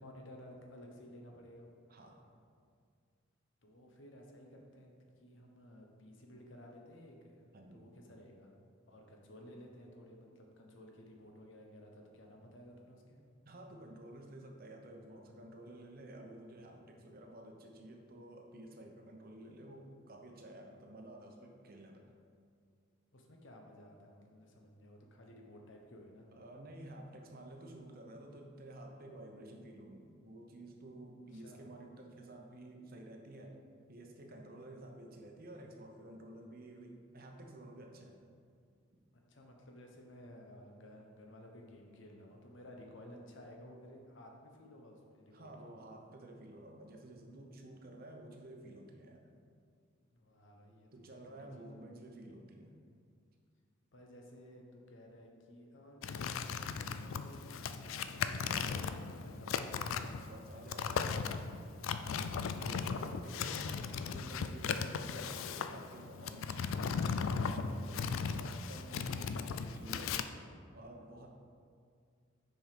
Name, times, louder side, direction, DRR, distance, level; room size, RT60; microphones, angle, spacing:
voice 1, 0.0-1.7 3.6-4.9 5.2-7.4 7.7-8.5 8.9-13.2 23.1-26.3 31.3-31.7 39.3-45.5 50.1-51.8 53.9-59.8, left 1 dB, 65° left, 1 dB, 1.0 m, -55 dB
voice 2, 1.9-2.2 7.5-7.9 13.4-22.1 26.3-33.6 33.9-38.2 45.3-49.3 50.9-52.8 60.0-61.3 61.9-66.9 67.3-68.1 68.4-70.2 70.7-71.3, right 1 dB, 50° right, 2 dB, 0.8 m, -52 dB
sound 1, 56.0-70.2, left 5 dB, 85° left, 0.4 m, -37 dB
6.3 x 4.8 x 5.1 m, 2.2 s
head